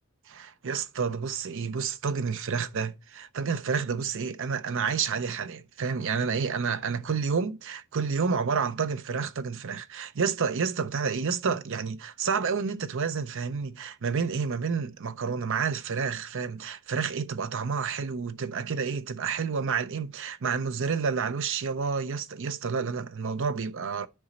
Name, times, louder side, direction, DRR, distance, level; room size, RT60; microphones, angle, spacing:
voice 1, 0.3-24.1, right 5 dB, 60° right, 0.6 m, -29 dB
10.0 x 5.0 x 4.1 m
head